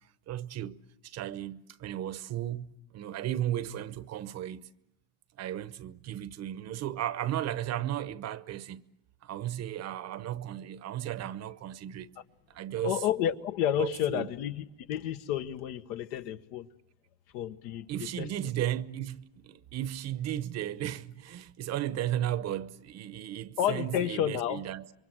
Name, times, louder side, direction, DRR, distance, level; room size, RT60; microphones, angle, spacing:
voice 1, 0.3-4.6 5.4-8.8 9.2-12.1 12.5-13.0 13.8-14.3 17.9-24.9, right 12 dB, 40° right, 0.9 m, -35 dB
voice 2, 12.8-16.7 17.3-18.3 23.6-24.6, left 11 dB, 70° left, 1.4 m, -31 dB
27.5 x 23.5 x 7.7 m
supercardioid pair, 125°, 42 cm